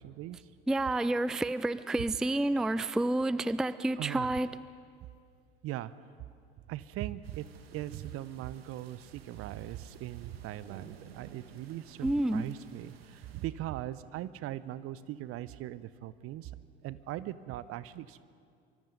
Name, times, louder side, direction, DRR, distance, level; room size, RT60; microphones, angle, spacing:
voice 1, 0.0-0.5 4.0-4.3 5.6-5.9 6.7-7.5 7.7-16.5 16.8-18.2, right 13 dB, 50° right, 16 dB, 0.9 m, -40 dB
voice 2, 0.7-4.5 12.0-12.5, right 1 dB, ahead, 15 dB, 0.5 m, -29 dB
sound 1, 7.2-13.5, right 7 dB, 80° right, 1.7 m, -54 dB
25.0 x 24.0 x 5.4 m, 2.3 s
hypercardioid pair, 70°, 30 cm